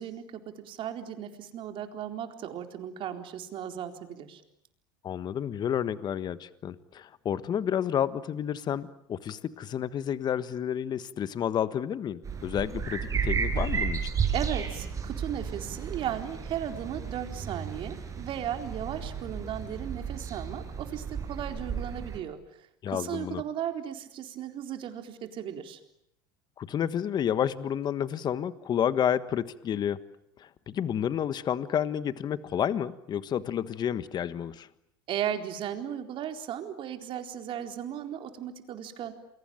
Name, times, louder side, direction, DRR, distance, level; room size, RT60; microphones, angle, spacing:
voice 1, 0.0-4.4 14.3-25.8 35.1-39.1, right 10 dB, 45° right, 6 dB, 4.1 m, -36 dB
voice 2, 5.0-14.1 22.8-23.4 26.6-30.0 30.4-34.7, left 9 dB, 35° left, 14 dB, 1.4 m, -30 dB
sound 1, 12.2-22.2, right 6 dB, 30° right, 6.0 m, -33 dB
28.5 x 23.0 x 9.1 m, 0.76 s
hypercardioid pair, 95°, 12 cm